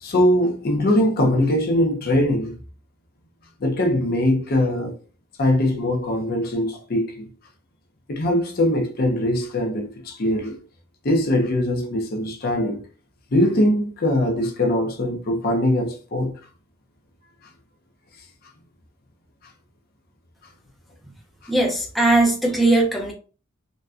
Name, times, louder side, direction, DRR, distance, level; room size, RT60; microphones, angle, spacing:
voice 1, 0.0-2.5 3.6-4.9 5.4-7.3 8.1-10.5 11.0-12.8 13.3-16.4, left 1 dB, 45° left, 0.6 m, -21 dB
voice 2, 21.5-23.1, right 2 dB, ahead, 0.5 m, -19 dB
4.0 x 2.2 x 2.3 m
head